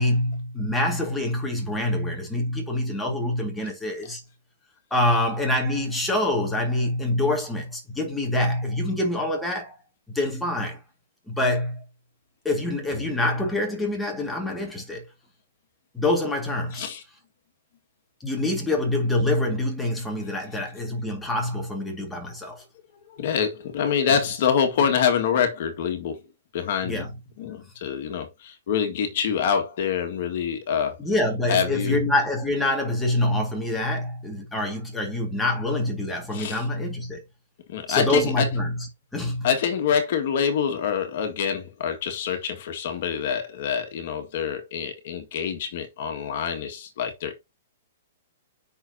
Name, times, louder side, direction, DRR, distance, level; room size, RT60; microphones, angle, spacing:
voice 1, 0.0-4.2 4.9-9.8 10.1-10.8 11.3-11.8 12.4-15.1 15.9-16.9 18.2-22.6 24.1-24.2 26.8-27.2 31.0-37.2 37.9-38.9 39.1-39.5, left 1 dB, 5° left, 2.0 m, -25 dB
voice 2, 23.2-26.2 26.5-27.0 27.4-30.9 31.5-32.0 36.3-36.6 37.7-38.5 39.4-47.3, left 7 dB, 50° left, 1.9 m, -26 dB
7.8 x 6.0 x 2.8 m
hypercardioid pair, 160°, 0 cm